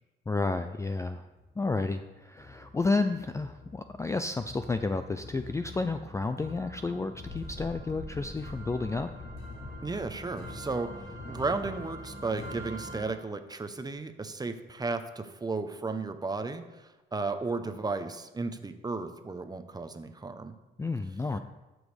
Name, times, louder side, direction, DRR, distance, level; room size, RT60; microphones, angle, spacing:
voice 1, 0.3-1.3 1.6-9.1 20.8-21.4, left 3 dB, 15° left, 9 dB, 0.3 m, -31 dB
sound 1, 1.4-1.9 2.4-13.1, left 1 dB, 55° left, 3.2 m, -44 dB
sound 2, 7.3-13.3, left 1 dB, 35° left, 1.7 m, -49 dB
voice 2, 9.8-20.6, right 3 dB, 20° right, 8 dB, 0.7 m, -34 dB
12.0 x 6.2 x 3.3 m, 1.1 s
cardioid pair, 90°, 20 cm